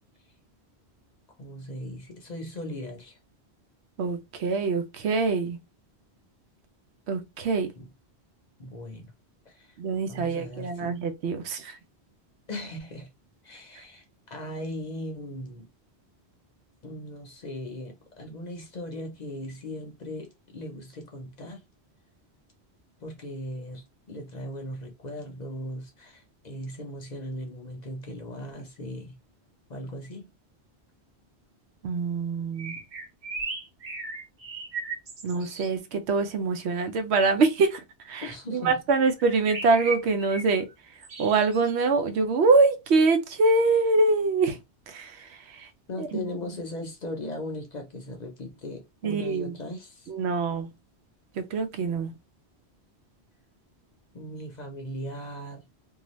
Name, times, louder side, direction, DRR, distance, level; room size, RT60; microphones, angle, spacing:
voice 1, 1.4-3.2 7.7-7.9 8.6-9.1 9.5-9.8 10.1-11.0 12.5-13.1 13.4-15.7 16.8-21.6 23.0-29.1 29.7-30.3 38.2-38.8 45.9-50.1 54.1-55.6, left 1 dB, 45° left, 0.7 m, -38 dB
voice 2, 4.0-5.6 7.1-7.7 9.8-11.8 31.8-32.7 35.2-37.8 38.1-38.3 38.5-40.7 41.2-44.6 44.9-45.3 45.6-45.7 46.1-46.2 49.0-49.5 50.1-50.7 51.4-52.1, right 3 dB, 80° right, 0.9 m, -24 dB
sound 1, 32.6-35.7 39.2-40.5 41.0-41.7, right 4 dB, 40° right, 0.6 m, -36 dB
2.7 x 2.3 x 3.0 m
omnidirectional pair, 1.1 m